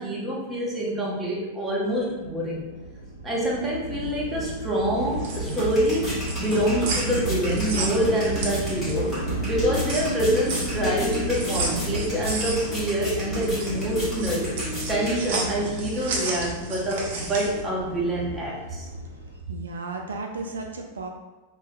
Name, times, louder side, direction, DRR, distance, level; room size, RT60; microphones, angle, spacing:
voice 1, 0.0-2.6 3.2-9.2 9.5-14.5 14.9-18.9, equal, 10° right, -5 dB, 1.0 m, -26 dB
sound 1, 2.0-19.4, right 1 dB, 85° left, 0.5 m, -32 dB
sound 2, 5.0-15.7, right 1 dB, 15° left, 1.3 m, -36 dB
sound 3, 5.0-9.1 9.5-17.6, right 3 dB, 55° right, 0.8 m, -33 dB
voice 2, 19.5-21.1, right 3 dB, 70° right, 2 dB, 0.3 m, -33 dB
5.0 x 2.2 x 2.6 m, 1.2 s
figure-of-eight pair, 90°, 0 cm